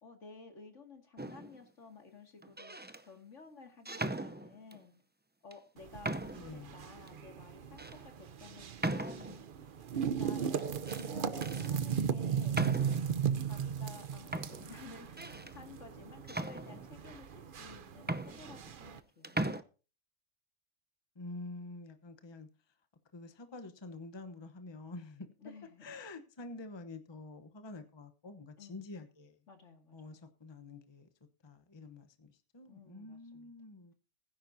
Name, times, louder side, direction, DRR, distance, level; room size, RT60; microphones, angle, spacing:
voice 1, 0.0-2.8 3.0-4.9 5.4-9.4 10.2-12.6 13.3-19.4 25.4-25.9 28.6-28.8 29.5-30.2 32.6-33.5, left 4 dB, 70° left, 4 dB, 2.6 m, -54 dB
sound 1, 1.2-1.6 2.4-3.0 3.9-4.8 5.5-5.6 6.0-6.6 7.1-7.2 7.8-8.0 8.8-9.5 10.6-11.1 11.4-11.7 12.5-13.2 13.9-14.0 14.3-15.6 16.3-17.1 17.7-17.8 18.0-19.0 19.2-19.6, right 2 dB, 15° right, 0.3 m, -38 dB
sound 2, 5.8-19.0, right 7 dB, 50° right, 0.8 m, -37 dB
voice 2, 6.3-6.8 21.1-22.5 23.1-25.3 25.8-29.4 29.9-31.1 31.4-33.9, left 2 dB, 25° left, 8 dB, 0.9 m, -48 dB
20.5 x 10.0 x 2.7 m, 0.35 s
omnidirectional pair, 1.3 m